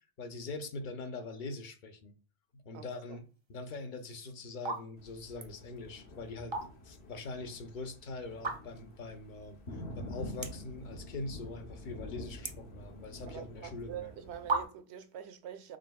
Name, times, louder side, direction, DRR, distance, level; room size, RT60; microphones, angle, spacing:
voice 1, 0.2-2.1 2.5-6.6 6.8-9.6 9.9-14.1, left 3 dB, 55° left, 0.7 m, -43 dB
voice 2, 2.7-3.2 13.3-15.8, right 10 dB, 90° right, 0.9 m, -45 dB
sound 1, 3.8-4.1 4.5-4.8 5.2-5.5 6.3-7.0 7.4-7.5 8.3-8.9 9.4-9.5 9.7-9.8 10.4-10.7 11.1-11.6 11.9-13.3 14.0-14.1 14.5-15.0, right 3 dB, 40° right, 0.4 m, -36 dB
Thunder, 5.0-14.6, left 1 dB, 80° left, 1.1 m, -47 dB
5.1 x 3.4 x 2.2 m
omnidirectional pair, 1.1 m